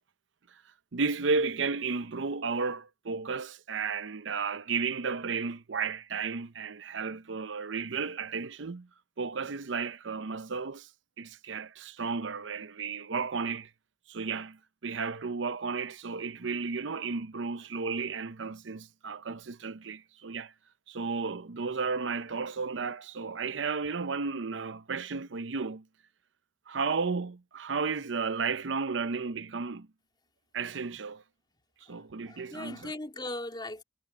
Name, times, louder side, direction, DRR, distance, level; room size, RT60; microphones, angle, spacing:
voice 1, 0.9-8.9 9.2-10.9 11.2-13.7 14.1-20.5 20.9-25.8 26.7-29.9 30.5-31.2 31.9-32.9, right 4 dB, 85° right, 0.7 m, -33 dB
voice 2, 31.9-33.8, left 2 dB, 25° left, 3.2 m, -39 dB
head